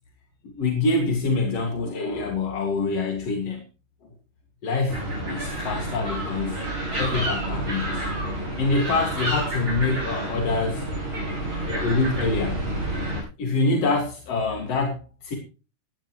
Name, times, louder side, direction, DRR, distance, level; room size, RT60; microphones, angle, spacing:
voice 1, 0.4-3.6 4.6-6.6 7.0-8.1 8.6-10.9 11.6-12.6 13.4-15.4, left 3 dB, 45° left, 3 dB, 2.7 m, -25 dB
sound 1, 4.9-13.2, right 1 dB, 30° right, 8.9 m, -29 dB
18.0 x 14.5 x 3.1 m, 0.34 s
omnidirectional pair, 4.8 m